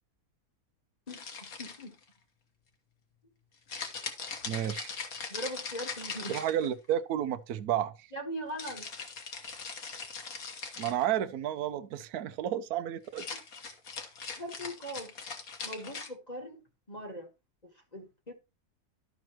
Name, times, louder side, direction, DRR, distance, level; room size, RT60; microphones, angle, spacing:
sound 1, 1.1-2.0 3.7-6.9 8.6-11.1 13.1-16.1, left 5 dB, 65° left, 1.8 m, -40 dB
voice 1, 1.1-2.0 5.3-6.4 8.1-8.9 13.3-13.4 14.4-15.1 15.6-16.6 16.9-17.3 17.9-18.3, equal, 30° left, 1.4 m, -40 dB
voice 2, 4.5-5.0 6.3-8.1 10.8-13.3, right 11 dB, 75° right, 1.2 m, -31 dB
12.5 x 6.0 x 3.0 m
omnidirectional pair, 1.6 m